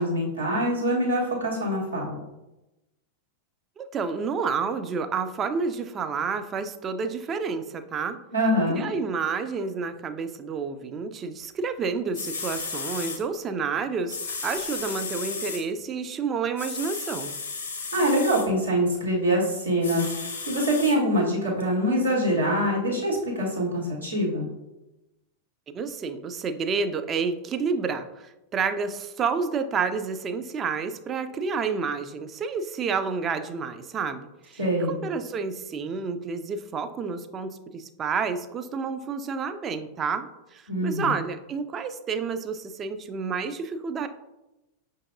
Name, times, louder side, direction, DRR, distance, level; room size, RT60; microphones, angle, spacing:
voice 1, 0.0-2.2 8.3-8.8 17.9-24.5 34.6-35.0 40.7-41.1, equal, 85° right, -7 dB, 1.3 m, -24 dB
voice 2, 3.8-8.2 8.7-17.4 25.7-44.1, right 5 dB, 25° right, 9 dB, 0.3 m, -30 dB
sound 1, 11.8-11.9 12.1-13.2 14.1-15.6 16.6-18.5 19.8-21.0 21.6-21.7, left 4 dB, 70° left, 0.7 m, -34 dB
5.6 x 2.6 x 2.5 m, 0.98 s
figure-of-eight pair, 90°, 0 cm